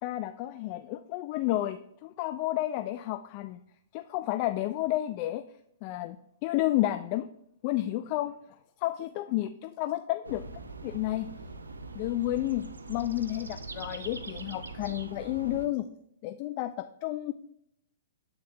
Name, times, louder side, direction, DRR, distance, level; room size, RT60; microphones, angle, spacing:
voice 1, 0.0-3.6 3.9-5.4 5.8-6.2 6.4-7.3 7.6-8.4 8.8-10.4 10.8-11.3 11.9-15.9 16.2-17.3, left 15 dB, 40° left, 9 dB, 0.3 m, -31 dB
sound 1, 10.2-15.7, right 3 dB, 80° right, 0.6 m, -42 dB
9.3 x 4.0 x 2.6 m, 0.76 s
hypercardioid pair, 115°, 0 cm